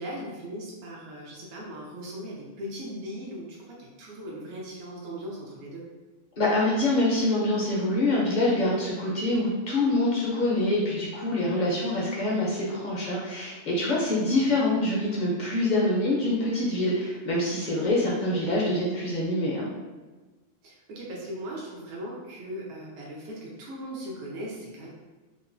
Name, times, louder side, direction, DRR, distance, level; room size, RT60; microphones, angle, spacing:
voice 1, 0.0-5.9 14.1-14.5 17.7-17.9 20.6-24.9, equal, 70° right, -4 dB, 0.8 m, -39 dB
voice 2, 6.4-19.7, left 1 dB, 55° left, -5 dB, 0.5 m, -25 dB
3.0 x 2.1 x 2.5 m, 1.3 s
omnidirectional pair, 1.3 m